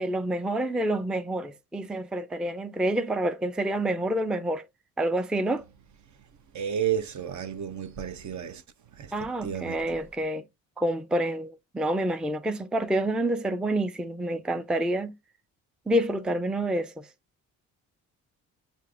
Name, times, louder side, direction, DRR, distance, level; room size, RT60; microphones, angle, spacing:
voice 1, 0.0-4.6 5.0-5.6 9.1-10.4 10.8-15.1 15.9-17.1, right 1 dB, ahead, 0.4 m, -28 dB
voice 2, 6.5-9.8, right 9 dB, 50° right, 0.7 m, -32 dB
6.5 x 2.5 x 2.4 m
supercardioid pair, 65°, 36 cm